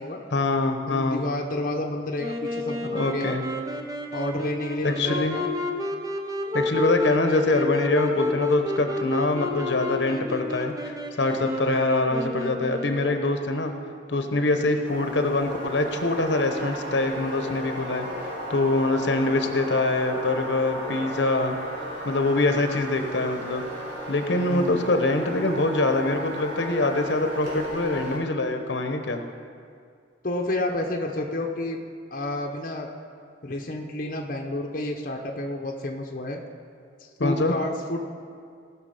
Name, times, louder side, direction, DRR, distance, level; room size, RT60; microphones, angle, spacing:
voice 1, 0.3-1.3 2.9-3.4 4.8-5.4 6.5-13.7 14.1-21.5 22.0-23.6 24.1-29.2 37.2-37.5, left 2 dB, 75° left, 5 dB, 0.9 m, -24 dB
voice 2, 0.9-3.4 4.1-5.5 24.5-24.9 30.2-31.8 32.1-32.9 33.4-36.4 37.2-38.1, left 1 dB, 45° left, 1 dB, 0.8 m, -30 dB
Wind instrument woodwind instrument, 2.2-13.3, left 2 dB, 20° right, 0.7 m, -30 dB
sound 1, 14.8-28.2, equal, 75° right, 3.6 m, -35 dB
18.0 x 6.2 x 5.4 m, 2.2 s
head